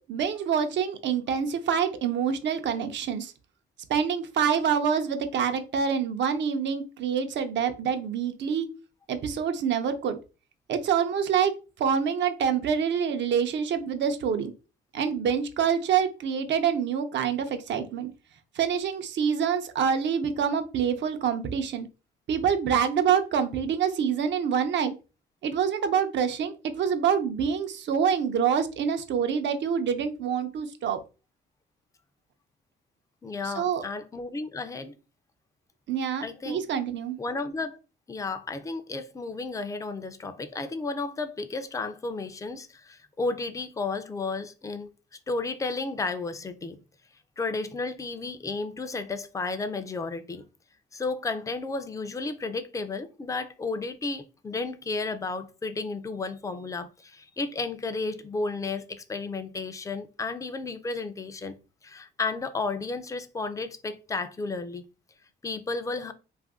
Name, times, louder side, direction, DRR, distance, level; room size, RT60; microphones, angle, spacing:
voice 1, 0.1-3.3 3.9-8.7 9.1-10.2 10.7-14.5 14.9-18.1 18.5-21.9 22.3-24.9 25.4-31.0 33.4-33.8 35.9-37.2, right 7 dB, 65° right, 0.6 m, -26 dB
voice 2, 33.2-34.9 36.2-36.6 37.2-37.8 38.1-44.9 45.3-46.8 47.4-50.4 50.9-61.6 61.8-64.9 65.4-66.1, left 3 dB, 15° left, 0.4 m, -33 dB
2.6 x 2.5 x 3.5 m
cardioid pair, 90°, 20 cm